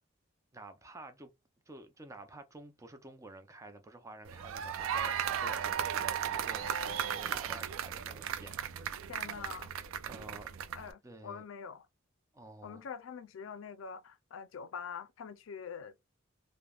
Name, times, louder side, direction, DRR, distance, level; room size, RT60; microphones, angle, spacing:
voice 1, 0.5-1.3 1.7-8.6 10.0-10.5 11.0-11.4 12.3-12.9, right 2 dB, 15° right, 0.5 m, -50 dB
sound 1, 4.3-10.9, right 8 dB, 85° right, 0.4 m, -36 dB
voice 2, 9.1-9.7 10.7-11.9 12.6-15.9, left 6 dB, 75° left, 0.4 m, -44 dB
3.3 x 2.0 x 2.3 m
head